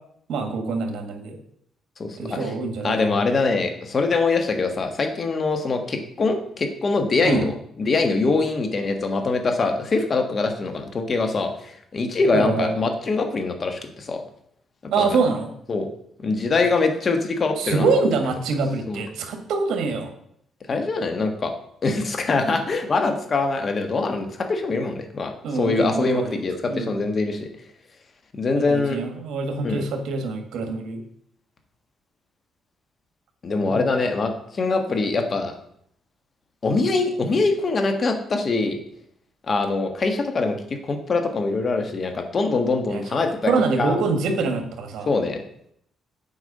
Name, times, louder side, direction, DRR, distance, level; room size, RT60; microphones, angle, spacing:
voice 1, 0.3-1.4 2.2-3.1 7.2-7.5 12.3-12.7 14.9-15.5 17.6-20.1 25.4-26.4 26.7-27.0 28.6-31.0 33.7-33.8 42.8-43.0 43.5-45.1, right 4 dB, 75° right, 6 dB, 1.6 m, -25 dB
voice 2, 2.0-2.5 2.8-7.5 7.8-14.2 15.0-15.1 15.7-15.9 16.2-17.9 18.9-19.0 20.7-21.5 21.8-27.5 28.3-29.0 29.6-29.8 33.4-35.5 36.6-38.8 39.5-40.6 40.8-43.5 43.8-43.9 45.1-45.4, left 3 dB, 40° left, 6 dB, 1.5 m, -23 dB
8.2 x 4.7 x 6.6 m, 0.70 s
cardioid pair, 90°, 0 cm